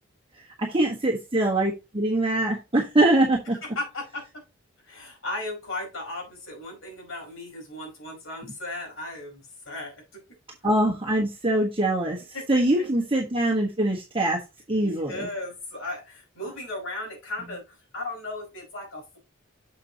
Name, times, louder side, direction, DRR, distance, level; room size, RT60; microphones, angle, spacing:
voice 1, 0.6-3.6 10.6-12.2 12.5-14.4 14.7-15.3, right 1 dB, 25° right, -2 dB, 1.3 m, -23 dB
voice 2, 3.5-4.2 4.8-9.9 12.3-12.6 14.8-19.2, left 2 dB, 70° left, 0 dB, 4.8 m, -36 dB
7.2 x 6.9 x 2.9 m, 0.25 s
head